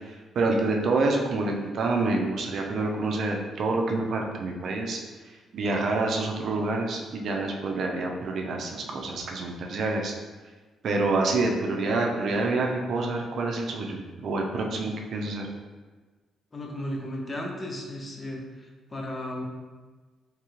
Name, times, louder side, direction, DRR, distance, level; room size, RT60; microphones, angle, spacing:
voice 1, 0.1-5.0 5.5-10.1 10.8-15.5, right 3 dB, 65° right, 1 dB, 0.4 m, -27 dB
voice 2, 16.5-18.4 18.9-19.5, left 1 dB, 25° left, 0 dB, 0.6 m, -34 dB
3.2 x 2.3 x 3.0 m, 1.3 s
cardioid pair, 90°, 0 cm